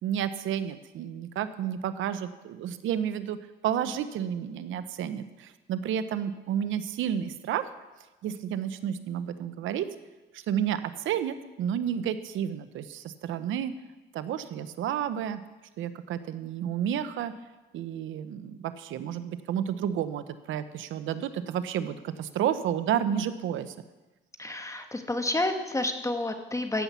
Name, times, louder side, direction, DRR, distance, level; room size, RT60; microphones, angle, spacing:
voice 1, 0.0-7.7 8.2-9.9 10.3-13.7 14.1-15.4 15.8-17.3 17.7-23.7, right 9 dB, 80° right, 12 dB, 0.8 m, -31 dB
voice 2, 24.4-26.8, left 2 dB, 15° left, 6 dB, 1.4 m, -30 dB
14.5 x 5.7 x 8.3 m, 1.1 s
cardioid pair, 90°, 20 cm